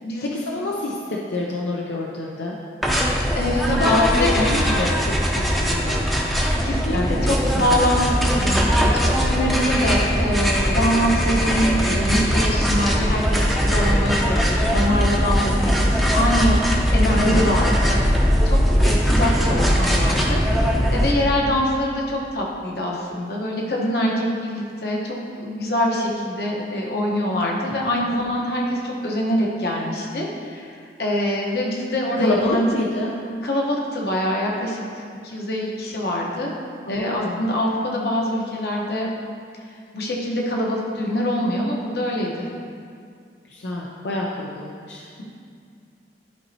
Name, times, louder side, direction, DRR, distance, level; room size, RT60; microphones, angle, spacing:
voice 1, 0.3-2.6 3.8-6.0 6.9-7.1 7.5-7.9 17.2-17.5 28.1-28.2 32.2-33.1 36.8-37.4 43.5-45.0, left 2 dB, 85° left, -3 dB, 0.6 m, -26 dB
sound 1, 2.8-21.1, equal, ahead, 0.6 m, -20 dB
voice 2, 3.4-4.3 6.6-20.4 20.9-32.7 33.4-36.5 36.9-39.1 39.9-42.5, equal, 60° left, -2 dB, 1.0 m, -24 dB
11.5 x 4.2 x 2.8 m, 2.2 s
head